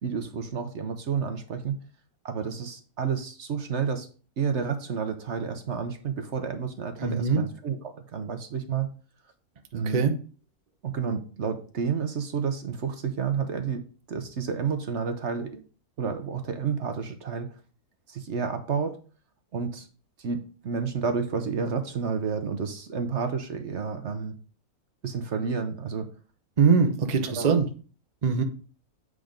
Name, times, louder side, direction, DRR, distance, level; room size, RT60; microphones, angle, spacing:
voice 1, 0.0-1.8 2.2-4.1 4.4-8.9 9.7-10.0 10.8-15.6 16.0-17.6 18.1-19.0 19.5-19.9 20.2-24.3 25.0-26.1 27.3-27.6, right 6 dB, 55° right, 8 dB, 1.0 m, -30 dB
voice 2, 7.0-7.4 9.8-10.1 26.6-27.7 28.2-28.4, right 5 dB, 35° right, 6 dB, 0.7 m, -22 dB
8.0 x 3.7 x 5.1 m, 0.38 s
omnidirectional pair, 1.6 m